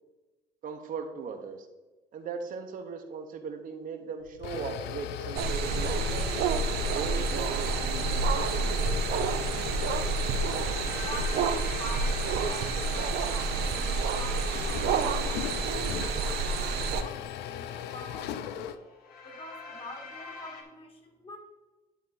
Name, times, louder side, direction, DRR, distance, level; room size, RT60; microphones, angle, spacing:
voice 1, 0.6-1.7 2.1-9.1, right 5 dB, 55° right, 4 dB, 1.0 m, -39 dB
sound 1, 4.2-18.8, left 10 dB, 85° left, 0.5 m, -37 dB
sound 2, 5.4-17.0, right 4 dB, 75° right, 0.7 m, -29 dB
sound 3, 6.2-20.6, left 4 dB, 65° left, 1.5 m, -49 dB
voice 2, 10.9-15.5 15.9-18.8 19.2-21.4, left 1 dB, 35° left, 0 dB, 2.1 m, -45 dB
11.0 x 4.1 x 4.0 m, 1.2 s
cardioid pair, 110°, 17 cm